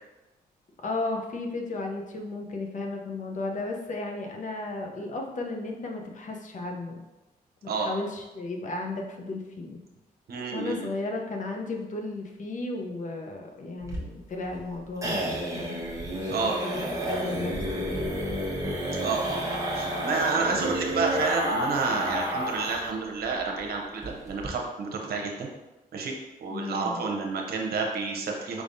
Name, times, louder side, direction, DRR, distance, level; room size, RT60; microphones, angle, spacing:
voice 1, 0.8-7.1 7.6-9.8 10.5-18.4 26.5-27.0, left 2 dB, 50° left, 2 dB, 0.7 m, -34 dB
voice 2, 10.3-10.9 16.3-16.6 19.0-25.5 25.9-26.1 26.4-28.6, right 4 dB, 75° right, 1 dB, 0.8 m, -30 dB
sound 1, 13.8-22.9 23.2-23.3 23.6-23.7 24.0-24.5, equal, 20° right, 1.0 m, -30 dB
4.9 x 3.4 x 2.6 m, 1.1 s
cardioid pair, 90°, 16 cm